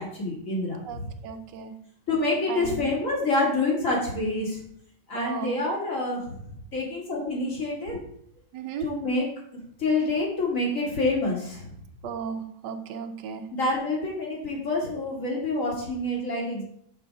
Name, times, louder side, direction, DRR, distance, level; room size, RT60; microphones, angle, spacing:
voice 1, 0.0-1.1 2.1-4.6 5.1-6.4 6.7-8.0 8.8-9.3 9.8-11.7 13.5-16.6, left 2 dB, 50° left, -3 dB, 2.5 m, -27 dB
voice 2, 0.9-1.7 2.5-2.8 5.1-5.6 8.5-8.9 12.0-13.5, right 7 dB, 90° right, 8 dB, 1.3 m, -35 dB
6.3 x 5.0 x 4.7 m, 0.67 s
omnidirectional pair, 1.8 m